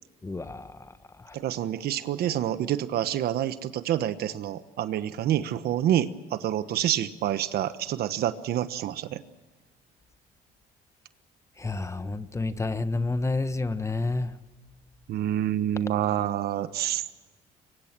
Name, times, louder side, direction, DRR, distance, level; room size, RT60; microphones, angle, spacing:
voice 1, 0.2-0.9 1.2-1.4 11.6-14.3 15.8-15.9, left 3 dB, 15° left, 11 dB, 1.3 m, -30 dB
voice 2, 1.3-9.2 15.1-17.0, right 11 dB, 70° right, 12 dB, 1.3 m, -27 dB
24.0 x 22.5 x 6.1 m, 1.2 s
cardioid pair, 110°, 17 cm